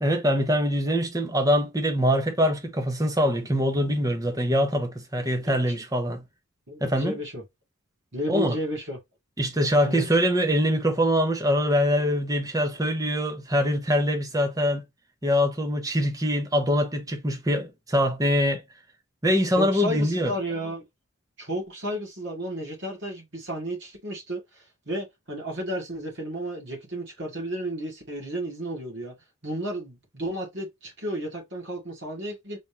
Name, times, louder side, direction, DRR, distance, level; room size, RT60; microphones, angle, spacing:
voice 1, 0.0-6.2 6.8-7.2 8.3-8.5 9.4-14.8 15.2-18.6 19.2-20.3, equal, 15° right, 0.8 m, -23 dB
voice 2, 5.2-5.8 6.7-7.4 8.1-9.0 9.8-10.1 19.6-20.9 21.4-29.1 29.4-32.6, right 1 dB, 55° right, 2.2 m, -33 dB
4.0 x 3.5 x 2.9 m
head